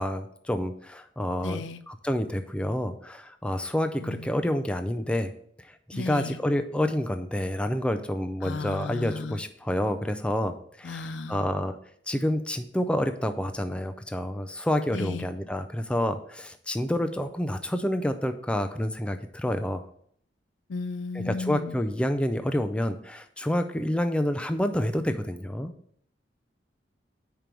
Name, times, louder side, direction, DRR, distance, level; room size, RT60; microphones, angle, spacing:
voice 1, 0.0-5.3 5.9-11.8 12.1-19.8 21.3-25.7, left 1 dB, 5° left, 7 dB, 0.4 m, -28 dB
voice 2, 1.4-1.8 4.0-4.5 5.9-6.4 8.4-9.4 10.8-11.5 14.9-15.3 20.7-21.8, left 3 dB, 75° left, 12 dB, 0.5 m, -35 dB
5.2 x 4.5 x 6.1 m, 0.64 s
head